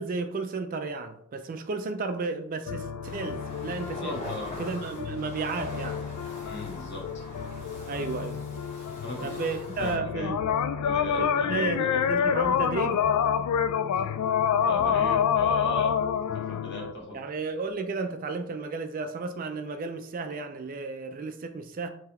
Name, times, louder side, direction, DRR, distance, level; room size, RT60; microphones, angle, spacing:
voice 1, 0.0-4.2 4.6-6.1 7.9-8.4 9.2-10.4 11.2-13.0 17.1-21.9, right 4 dB, 40° right, 0.3 m, -33 dB
sound 1, 2.7-16.9, left 8 dB, 80° left, 0.3 m, -28 dB
sound 2, 3.0-10.0, left 1 dB, 30° left, 1.2 m, -43 dB
voice 2, 4.0-4.6 6.4-7.1 9.0-9.3 9.8-10.4 10.8-12.3 14.6-16.0 16.3-17.2, left 2 dB, 50° left, 1.2 m, -37 dB
3.7 x 2.8 x 4.3 m
head